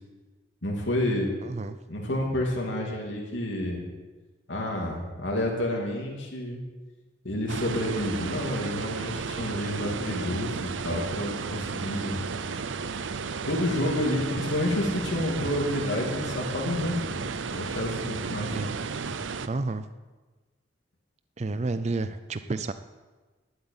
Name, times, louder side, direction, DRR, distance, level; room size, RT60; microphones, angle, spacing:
voice 1, 0.6-1.3 1.9-3.8 4.5-6.6 7.2-12.2 13.5-18.5, left 1 dB, 75° left, -1 dB, 2.8 m, -29 dB
voice 2, 1.4-1.8 18.5-18.8 19.5-19.9 21.4-22.7, right 3 dB, 35° right, 11 dB, 0.4 m, -30 dB
sound 1, 7.5-19.5, right 5 dB, 85° right, 0.6 m, -33 dB
12.0 x 7.9 x 8.9 m, 1.3 s
head